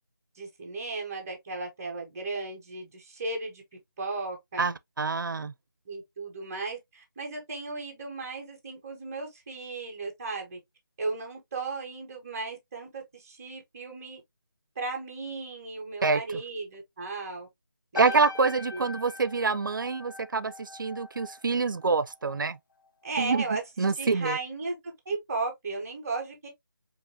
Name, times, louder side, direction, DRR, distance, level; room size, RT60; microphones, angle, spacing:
voice 1, 0.4-3.6 4.0-4.7 5.9-10.6 11.0-14.2 14.8-17.5 17.9-18.2 18.7-18.9 23.0-23.6 24.0-24.8 25.1-26.5, right 3 dB, 10° right, 0.4 m, -35 dB
voice 2, 4.6-5.5 16.0-16.4 17.9-22.6 23.2-23.4 23.8-24.4, right 4 dB, 70° right, 0.4 m, -26 dB
sound 1, 17.9-22.6 22.8-23.2, left 3 dB, 70° left, 1.1 m, -41 dB
4.7 x 2.6 x 2.6 m
figure-of-eight pair, 170°, 11 cm